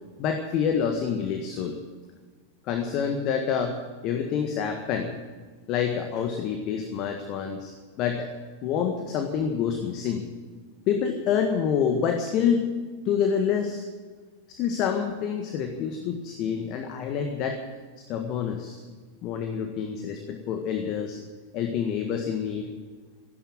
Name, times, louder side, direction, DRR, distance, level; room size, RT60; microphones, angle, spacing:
voice 1, 0.2-1.8 2.6-5.1 5.7-8.3 8.6-10.2 10.9-12.7 13.0-13.9 14.5-17.6 18.1-18.8 19.2-21.2 21.5-22.7, left 7 dB, 40° left, 5 dB, 1.6 m, -27 dB
15.5 x 12.0 x 7.7 m, 1.5 s
figure-of-eight pair, 90°, 0 cm